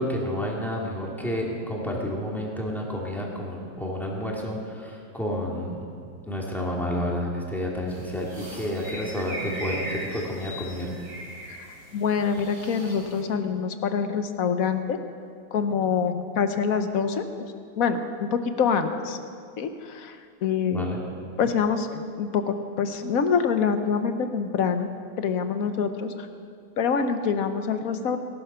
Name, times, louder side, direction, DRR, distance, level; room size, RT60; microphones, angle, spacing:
voice 1, 0.0-5.9 6.3-10.9 20.7-21.0, equal, ahead, -3 dB, 2.4 m, -30 dB
sound 1, 7.9-13.2, right 1 dB, 60° right, 3.8 m, -39 dB
voice 2, 11.9-15.0 15.5-17.2 17.8-19.2 19.6-20.9 21.4-24.9 25.2-26.3 26.8-28.2, left 6 dB, 60° left, 8 dB, 1.2 m, -25 dB
18.5 x 12.0 x 5.6 m, 2.2 s
omnidirectional pair, 1.9 m